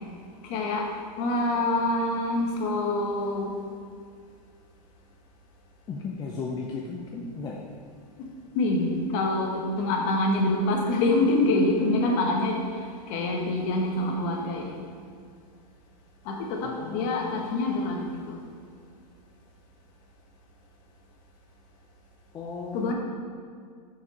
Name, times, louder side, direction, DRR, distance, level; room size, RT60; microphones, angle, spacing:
voice 1, 0.4-0.9 1.2-3.5 8.5-12.7 13.1-14.7 16.2-18.4 22.7-22.9, left 2 dB, 40° left, 1 dB, 1.3 m, -26 dB
voice 2, 5.9-7.6 16.6-17.5 22.3-22.9, left 4 dB, 20° left, -1 dB, 0.5 m, -36 dB
6.4 x 6.2 x 4.2 m, 2.2 s
hypercardioid pair, 140°, 21 cm